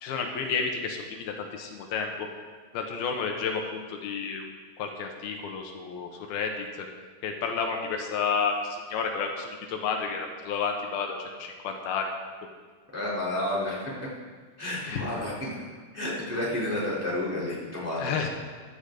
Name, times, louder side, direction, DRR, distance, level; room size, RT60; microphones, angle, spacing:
voice 1, 0.0-2.3 2.7-4.4 4.8-6.7 7.2-12.1 14.9-15.0 18.0-18.3, left 5 dB, 80° left, 3 dB, 2.9 m, -31 dB
voice 2, 12.9-13.9 14.6-15.6 15.9-18.1, left 1 dB, 5° right, -7 dB, 2.8 m, -30 dB
15.0 x 12.0 x 3.9 m, 1.5 s
omnidirectional pair, 4.4 m